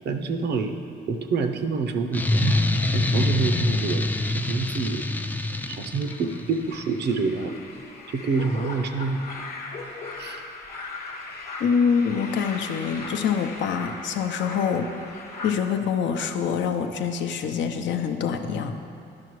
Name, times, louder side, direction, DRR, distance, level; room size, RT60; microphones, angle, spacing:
voice 1, 0.0-0.8 1.1-2.6 2.9-5.0 5.7-7.6 8.1-9.2 10.2-10.4, right 4 dB, 60° right, 6 dB, 0.6 m, -27 dB
sound 1, 2.1-6.6, left 2 dB, 10° left, 0.3 m, -25 dB
sound 2, 5.3-15.5, left 3 dB, 50° left, 1.0 m, -39 dB
voice 2, 11.6-14.9 15.4-18.7, left 6 dB, 70° left, 6 dB, 0.6 m, -25 dB
10.5 x 5.8 x 3.1 m, 2.7 s
cardioid pair, 90°, 20 cm